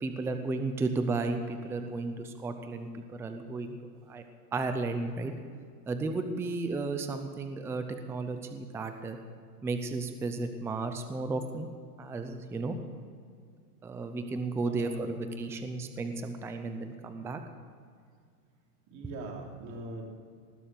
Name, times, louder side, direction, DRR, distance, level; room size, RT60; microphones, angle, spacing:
voice 1, 0.0-3.8 4.1-4.2 4.5-5.3 5.9-9.2 9.6-11.7 12.0-12.8 13.8-17.4, right 3 dB, 5° right, 7 dB, 0.5 m, -33 dB
voice 2, 14.7-15.0 18.9-20.0, right 2 dB, 35° right, 0 dB, 3.4 m, -41 dB
19.5 x 6.9 x 7.6 m, 2.1 s
supercardioid pair, 145°, 47 cm